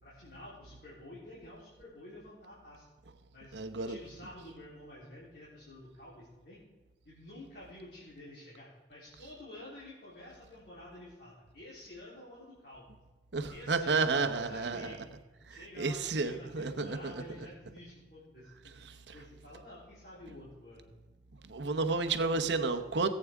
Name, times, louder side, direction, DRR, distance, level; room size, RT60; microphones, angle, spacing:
voice 1, 0.0-2.9 3.3-3.5 3.9-6.6 7.1-12.8 13.5-15.0 15.5-20.9, left 1 dB, 65° left, -8 dB, 3.4 m, -50 dB
voice 2, 3.5-4.0 13.3-14.9 15.5-17.1 19.1-19.2 21.5-23.1, right 4 dB, 85° right, 7 dB, 0.9 m, -31 dB
18.0 x 8.5 x 3.5 m, 1.3 s
head